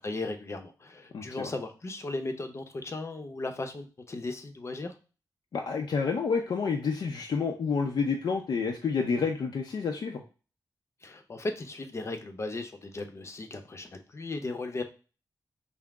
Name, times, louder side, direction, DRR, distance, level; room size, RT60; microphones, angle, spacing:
voice 1, 0.0-4.9 11.0-14.8, left 2 dB, 40° left, 6 dB, 0.7 m, -36 dB
voice 2, 1.1-1.5 5.5-10.2, left 5 dB, 75° left, 2 dB, 0.5 m, -29 dB
5.8 x 2.0 x 3.5 m, 0.34 s
wide cardioid pair, 115°, 7 cm